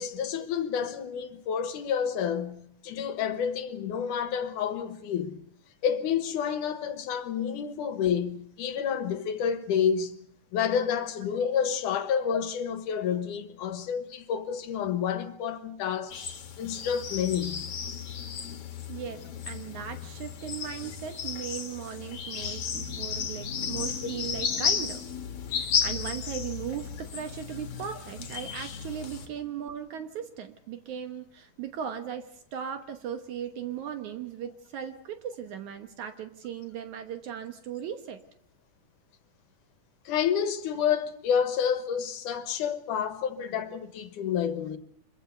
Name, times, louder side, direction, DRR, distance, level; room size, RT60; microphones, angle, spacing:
voice 1, 0.0-5.4 5.8-10.2 10.5-16.2 16.6-17.6 40.1-44.8, left 8 dB, 75° left, 2.6 m, -29 dB
sound 1, 16.1-29.3, left 6 dB, 50° left, 2.8 m, -34 dB
voice 2, 18.9-25.0 25.5-38.2, right 9 dB, 70° right, 2.5 m, -38 dB
26.0 x 22.5 x 6.8 m
omnidirectional pair, 3.7 m